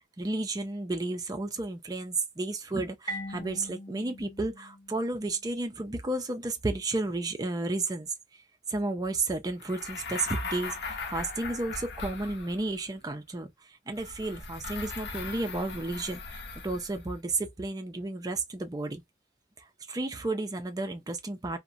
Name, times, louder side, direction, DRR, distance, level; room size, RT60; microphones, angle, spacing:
voice 1, 0.2-8.1 8.7-13.5 13.9-19.0 19.9-21.6, right 2 dB, 20° right, 0.4 m, -32 dB
Marimba xylophone, 3.1-5.7, right 1 dB, 25° left, 1.6 m, -42 dB
sound 1, 9.6-12.8 13.9-17.1, left 4 dB, 60° left, 0.5 m, -39 dB
2.7 x 2.1 x 2.4 m
head